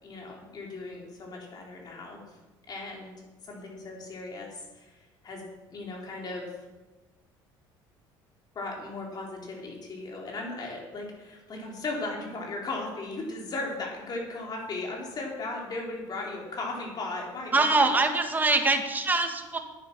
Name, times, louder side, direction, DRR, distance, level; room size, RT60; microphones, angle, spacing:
voice 1, 0.0-2.4 2.7-3.1 3.4-5.4 5.7-6.6 8.5-17.9, left 2 dB, 45° left, -1 dB, 4.1 m, -37 dB
voice 2, 17.5-19.6, right 3 dB, 20° right, 5 dB, 1.7 m, -24 dB
9.8 x 9.6 x 6.0 m, 1.2 s
supercardioid pair, 95°, 10 cm